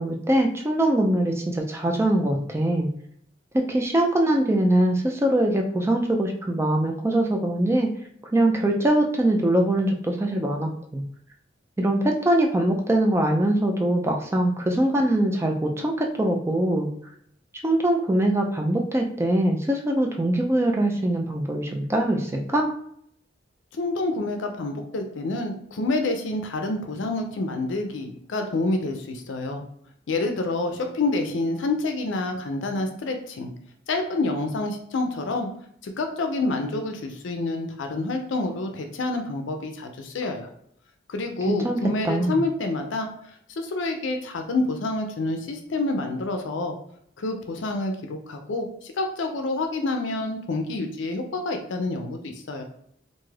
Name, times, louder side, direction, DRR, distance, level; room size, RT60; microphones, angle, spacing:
voice 1, 0.0-2.9 3.5-7.9 8.3-11.0 11.8-16.9 17.6-22.7 41.5-41.8 42.0-42.4, right 1 dB, 15° right, 1 dB, 0.3 m, -22 dB
voice 2, 23.8-29.6 30.1-33.5 33.9-35.5 35.8-40.5 41.1-43.1 43.5-46.8 47.2-52.6, left 2 dB, 75° left, 4 dB, 0.4 m, -28 dB
2.5 x 2.4 x 3.2 m, 0.68 s
head